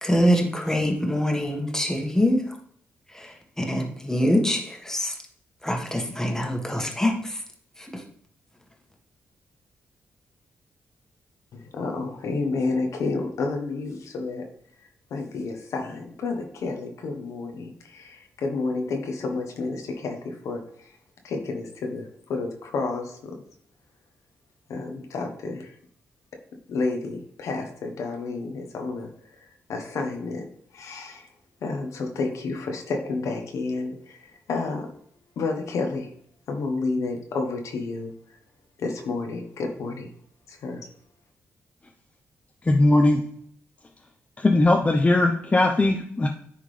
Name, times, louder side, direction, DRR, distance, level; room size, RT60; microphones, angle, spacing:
voice 1, 0.0-2.4 3.1-5.1 5.6-7.4 7.8-8.0, equal, 10° left, 2 dB, 1.6 m, -24 dB
voice 2, 11.5-14.4 15.1-20.9 21.2-23.3 24.7-25.7 26.7-29.1 29.7-30.5 30.7-31.3 31.6-34.9 35.4-36.1 36.5-38.1 38.8-40.1 40.5-40.8, left 3 dB, 75° left, 3 dB, 1.1 m, -30 dB
voice 3, 42.6-43.2 44.4-46.3, left 2 dB, 25° left, 2 dB, 0.7 m, -19 dB
10.0 x 3.6 x 3.3 m, 0.63 s
cardioid pair, 65°, 5 cm